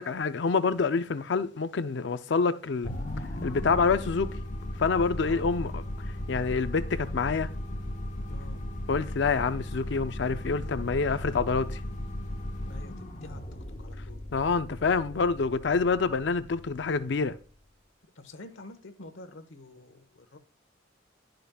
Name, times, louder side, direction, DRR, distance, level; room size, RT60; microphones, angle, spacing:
voice 1, 0.0-2.9 3.4-4.4 4.8-5.8 6.3-7.5 8.9-11.8 14.3-17.4, left 4 dB, 65° left, 0.5 m, -27 dB
sound 1, 2.8-17.3, left 1 dB, 40° left, 0.9 m, -36 dB
voice 2, 5.2-5.5 8.3-8.6 12.6-13.4 13.8-14.2 18.2-20.4, left 2 dB, 85° left, 1.0 m, -47 dB
11.5 x 5.1 x 2.3 m
head